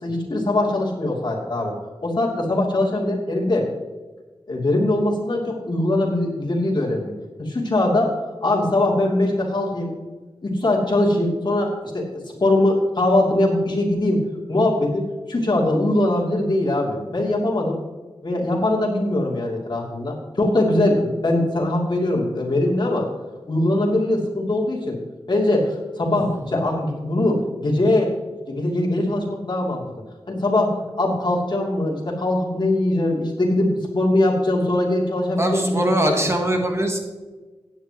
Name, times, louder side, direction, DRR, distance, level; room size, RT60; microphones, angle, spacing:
voice 1, 0.0-1.7 2.0-3.7 4.5-7.1 7.4-8.1 8.4-10.0 10.4-14.2 14.5-17.8 18.2-23.1 23.5-25.0 25.3-28.1 28.5-29.8 30.3-36.2, left 1 dB, 45° left, -2 dB, 3.1 m, -21 dB
voice 2, 35.4-37.0, right 1 dB, 25° right, 3 dB, 1.4 m, -22 dB
16.0 x 10.5 x 3.1 m, 1.3 s
wide cardioid pair, 90°, 10 cm